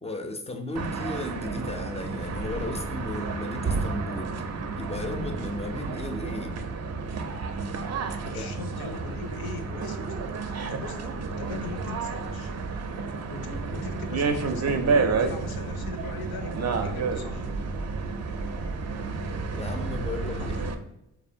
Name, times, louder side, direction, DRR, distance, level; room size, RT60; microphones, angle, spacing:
voice 1, 0.0-4.4 4.7-6.6 8.3-8.5 19.5-20.5, left 2 dB, 20° left, 5 dB, 0.3 m, -35 dB
sound 1, 0.7-20.7, right 4 dB, 45° right, 0.4 m, -30 dB
voice 2, 8.3-12.5 13.3-17.5 20.4-20.7, left 4 dB, 75° left, 6 dB, 0.5 m, -40 dB
2.6 x 2.0 x 2.6 m, 0.85 s
supercardioid pair, 50°, 37 cm